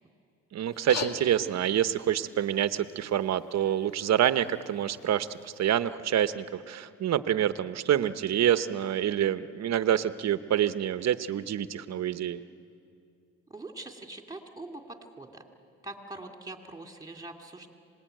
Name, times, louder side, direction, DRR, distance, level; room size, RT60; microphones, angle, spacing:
voice 1, 0.5-12.4, right 10 dB, 60° right, 12 dB, 1.0 m, -27 dB
sound 1, 0.7-5.7, left 5 dB, 60° left, 1.9 m, -43 dB
voice 2, 13.5-15.4 15.8-17.7, right 2 dB, 10° right, 3 dB, 2.8 m, -43 dB
26.0 x 20.0 x 9.1 m, 2.4 s
cardioid pair, 90°, 30 cm